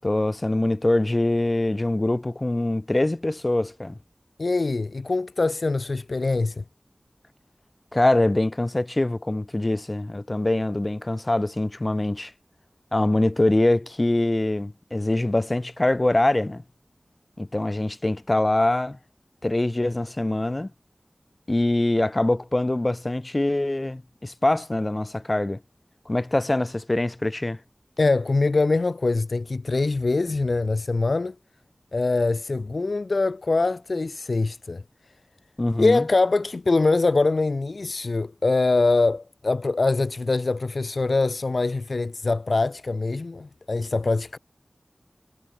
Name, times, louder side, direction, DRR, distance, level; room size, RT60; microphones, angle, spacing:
voice 1, 0.0-4.0 7.9-12.3 12.9-16.6 17.4-19.0 19.4-20.7 21.5-25.6 26.1-27.6 35.6-36.0, left 1 dB, 40° left, 5.2 m, -23 dB
voice 2, 4.4-6.6 28.0-31.3 31.9-34.8 35.8-44.4, left 3 dB, 85° left, 1.3 m, -23 dB
wide cardioid pair, 50°, 0 cm